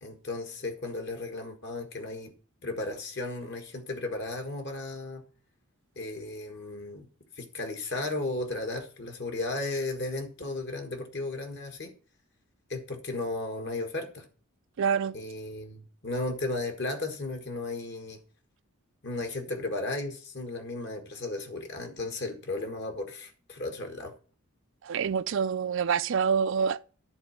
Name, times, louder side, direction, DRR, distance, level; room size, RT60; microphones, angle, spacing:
voice 1, 0.0-2.3 2.6-5.2 5.9-7.1 7.4-11.9 12.7-14.2 15.1-18.2 19.0-24.1, left 2 dB, 50° left, 1.6 m, -35 dB
voice 2, 14.8-15.1 24.8-26.8, right 6 dB, 60° right, 0.4 m, -26 dB
11.0 x 4.2 x 7.1 m
head